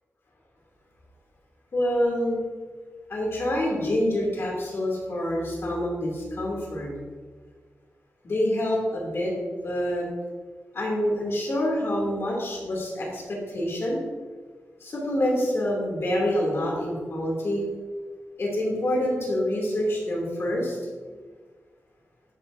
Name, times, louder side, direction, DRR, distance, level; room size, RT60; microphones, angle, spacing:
voice 1, 1.7-2.4 3.1-6.9 8.2-9.3 9.6-10.1 10.7-14.0 14.8-17.6 18.4-20.8, left 1 dB, 50° left, -3 dB, 2.7 m, -26 dB
11.5 x 9.0 x 2.7 m, 1.5 s
wide cardioid pair, 180°, 5 cm